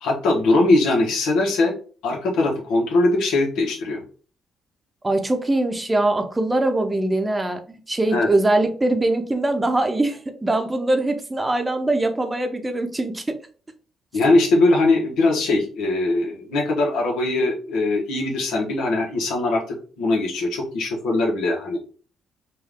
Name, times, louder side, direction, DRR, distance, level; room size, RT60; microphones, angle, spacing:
voice 1, 0.0-1.7 2.0-4.0 8.1-8.3 14.1-19.6 20.0-21.8, left 2 dB, 85° left, 0 dB, 1.4 m, -21 dB
voice 2, 5.0-13.4, right 2 dB, 20° right, 6 dB, 0.7 m, -22 dB
4.5 x 2.6 x 3.6 m, 0.41 s
cardioid pair, 90°, 0 cm